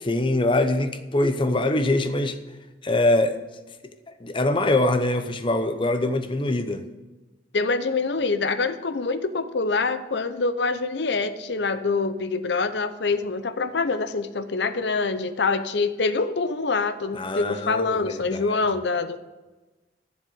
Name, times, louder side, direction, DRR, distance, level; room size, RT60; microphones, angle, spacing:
voice 1, 0.1-2.4 2.8-3.3 4.2-6.8 17.1-18.6, left 2 dB, 30° left, 9 dB, 0.8 m, -23 dB
voice 2, 7.5-19.2, left 4 dB, 75° left, 12 dB, 0.8 m, -25 dB
11.5 x 7.1 x 6.6 m, 1.2 s
head